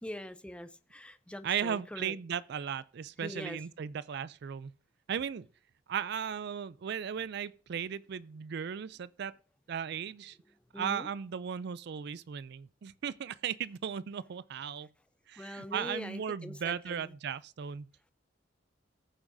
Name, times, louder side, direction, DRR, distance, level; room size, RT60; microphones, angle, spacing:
voice 1, 0.0-2.2 3.2-3.7 10.4-11.1 15.3-17.2, left 1 dB, 5° left, 0.5 m, -43 dB
voice 2, 1.4-4.7 5.1-5.5 5.9-9.4 9.7-10.4 10.8-14.9 15.3-17.9, right 8 dB, 60° right, 0.4 m, -36 dB
19.5 x 7.1 x 2.6 m
head